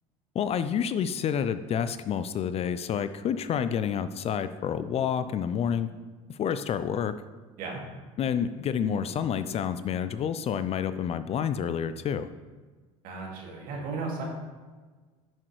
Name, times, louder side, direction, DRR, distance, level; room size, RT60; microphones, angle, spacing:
voice 1, 0.3-5.9 6.3-7.1 8.2-12.3, left 8 dB, 40° left, 12 dB, 0.4 m, -29 dB
voice 2, 13.0-14.2, right 4 dB, 60° right, -1 dB, 2.2 m, -35 dB
10.5 x 6.1 x 3.2 m, 1.4 s
hypercardioid pair, 70°, 17 cm